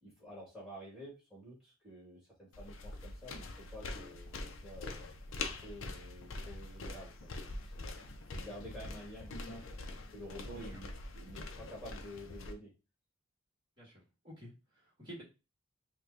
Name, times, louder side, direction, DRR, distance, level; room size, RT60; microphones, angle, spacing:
voice 1, 0.0-4.3 4.6-5.1 5.5-7.1 7.7-9.6 10.1-12.7, equal, 5° right, -6 dB, 2.2 m, -50 dB
sound 1, 2.5-12.5, left 2 dB, 70° left, 0.6 m, -44 dB
voice 2, 13.8-15.2, equal, 25° right, -4 dB, 1.8 m, -51 dB
5.3 x 2.3 x 2.8 m, 0.28 s
head